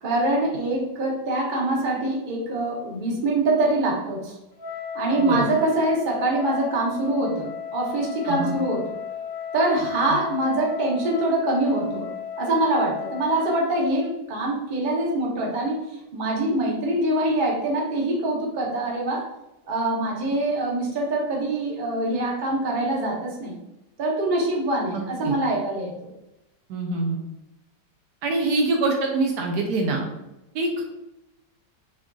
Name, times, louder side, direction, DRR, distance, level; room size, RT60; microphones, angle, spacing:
voice 1, 0.0-4.3 4.9-8.8 9.5-12.1 12.4-15.8 16.1-19.2 19.7-23.6 24.0-25.9, right 2 dB, 40° right, -2 dB, 0.8 m, -24 dB
Wind instrument woodwind instrument, 4.6-13.9, left 8 dB, 55° left, 0.9 m, -35 dB
voice 2, 26.7-27.2 28.2-30.1 30.5-30.9, right 2 dB, 75° right, 2 dB, 1.1 m, -24 dB
5.8 x 2.6 x 2.3 m, 0.94 s
omnidirectional pair, 1.8 m